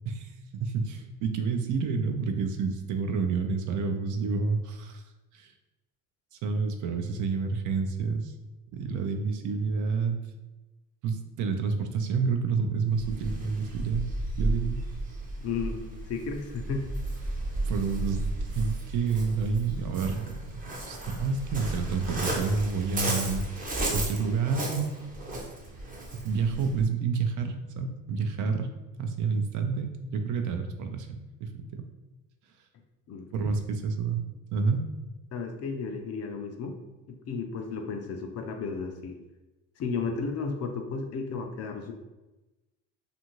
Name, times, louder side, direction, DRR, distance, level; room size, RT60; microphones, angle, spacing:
voice 1, 0.6-5.0 5.3-5.5 6.3-8.3 8.7-10.2 11.0-14.1 14.4-14.8 17.7-18.2 18.5-20.4 20.9-23.5 23.9-24.9 26.1-28.7 29.0-31.9 33.3-34.2 34.5-34.8, right 5 dB, 55° right, 6 dB, 0.5 m, -29 dB
Waves surf, 12.9-26.8, right 1 dB, 20° right, 0.7 m, -34 dB
voice 2, 15.4-16.9 33.1-33.6 35.3-36.8 37.1-39.1 39.8-41.9, left 4 dB, 40° left, 4 dB, 0.5 m, -34 dB
2.6 x 2.5 x 2.9 m, 1.1 s
supercardioid pair, 85°, 38 cm